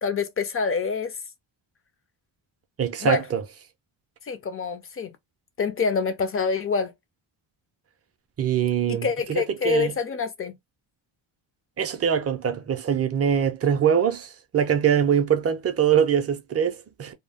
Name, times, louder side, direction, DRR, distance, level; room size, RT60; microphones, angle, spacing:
voice 1, 0.0-1.2 3.0-3.3 4.3-5.2 5.6-6.9 8.9-10.6, left 5 dB, 30° left, 0.4 m, -26 dB
voice 2, 2.8-3.4 8.4-9.9 11.8-17.1, right 8 dB, 35° right, 0.4 m, -23 dB
2.2 x 2.1 x 3.4 m
wide cardioid pair, 145°, 48 cm